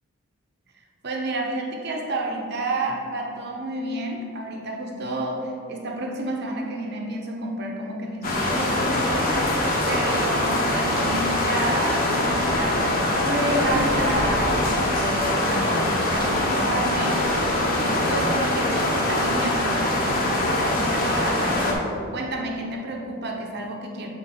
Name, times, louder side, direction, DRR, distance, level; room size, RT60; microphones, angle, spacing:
voice 1, 1.0-9.4 9.8-24.1, right 1 dB, 55° right, 1 dB, 0.8 m, -30 dB
sound 1, 8.2-21.7, left 1 dB, 45° left, 1.0 m, -23 dB
7.1 x 3.8 x 4.3 m, 2.4 s
head